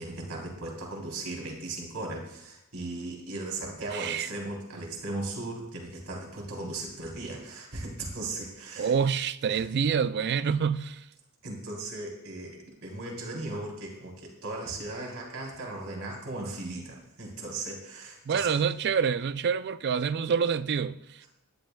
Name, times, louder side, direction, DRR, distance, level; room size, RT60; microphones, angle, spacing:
voice 1, 0.0-8.9 9.5-9.6 11.4-18.5, right 2 dB, 75° right, 3.5 m, -37 dB
voice 2, 3.9-4.3 8.8-11.0 18.3-21.0, right 6 dB, 50° right, 0.4 m, -27 dB
18.5 x 11.5 x 2.3 m
head